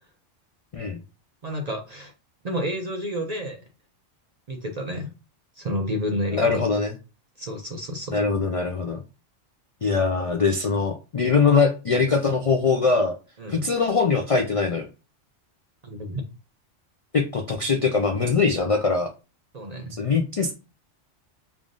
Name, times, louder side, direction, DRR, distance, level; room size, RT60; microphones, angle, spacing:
voice 1, 1.4-2.1 2.4-3.6 4.5-5.1 5.6-6.5 7.4-8.2 13.4-13.7 15.8-16.2 19.5-20.0, equal, 50° right, 3 dB, 0.5 m, -30 dB
voice 2, 6.3-6.9 8.1-9.0 9.8-13.1 13.5-14.9 17.1-19.1 19.9-20.5, left 4 dB, 60° left, 4 dB, 0.3 m, -22 dB
3.4 x 2.5 x 3.6 m, 0.31 s
omnidirectional pair, 1.2 m